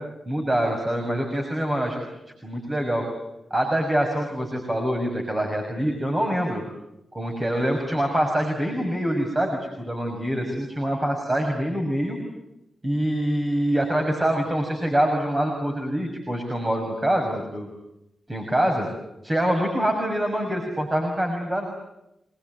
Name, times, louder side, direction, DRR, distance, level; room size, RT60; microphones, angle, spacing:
voice 1, 0.3-2.1 2.4-3.1 3.5-6.6 7.1-12.2 12.8-17.7 18.3-18.9 19.2-21.6, right 1 dB, 25° right, 3 dB, 6.3 m, -25 dB
27.0 x 22.0 x 9.4 m, 0.88 s
cardioid pair, 60°, 0 cm